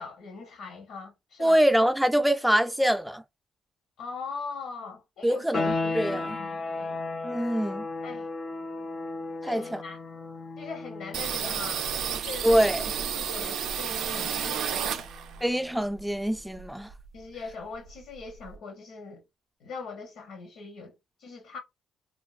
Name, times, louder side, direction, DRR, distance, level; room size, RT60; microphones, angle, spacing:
voice 1, 0.0-1.6 4.0-5.5 6.1-7.0 8.0-8.3 9.4-10.0 10.6-12.6 13.0-15.1 17.1-19.2 19.6-20.9 21.2-21.6, left 4 dB, 80° left, 0.8 m, -41 dB
voice 2, 1.4-3.2 5.2-6.4 7.2-7.9 9.4-9.8 12.4-12.8 15.4-16.9, equal, ahead, 0.4 m, -24 dB
sound 1, 5.5-16.0, left 3 dB, 50° left, 0.6 m, -36 dB
sound 2, 11.1-15.5 15.8-17.2 17.5-17.6 17.8-18.6, right 8 dB, 80° right, 0.4 m, -32 dB
2.5 x 2.5 x 2.4 m
cardioid pair, 90°, 0 cm